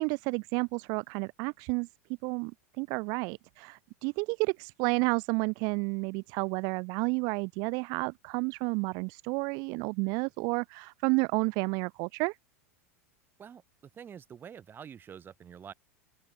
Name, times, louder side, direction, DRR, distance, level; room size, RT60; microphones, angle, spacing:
voice 1, 0.0-1.9 2.2-12.4, right 32 dB, 50° right, 0.4 m, -31 dB
voice 2, 13.9-15.7, right 8 dB, 25° right, 0.9 m, -46 dB
open air
hypercardioid pair, 95°, 8 cm